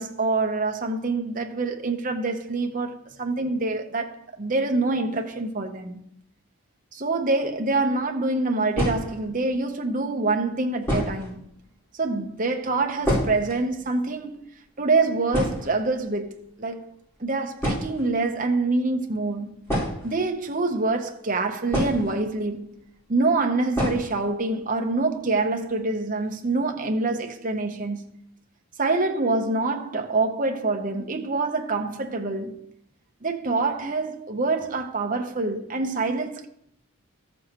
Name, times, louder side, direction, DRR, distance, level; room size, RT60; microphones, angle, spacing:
voice 1, 0.0-6.0 6.9-11.4 12.0-14.4 14.8-16.8 17.2-19.7 20.0-22.8 23.1-28.1 28.8-32.6 33.2-36.5, right 3 dB, 35° right, 0.8 m, -26 dB
sound 1, 7.8-7.9 8.7-9.4 10.3-10.4 10.8-11.4 11.7-11.8 12.0-12.2 12.5-13.6 13.9-14.0 14.3-14.6 14.9-15.0 15.3-16.2 17.1-17.3 17.6-18.1 19.6-20.7 21.7-22.5 22.8-22.9 23.7-24.2 24.5-24.6 25.0-25.1 25.5-25.8, equal, 10° left, 4.5 m, -28 dB
14.0 x 7.1 x 3.0 m
head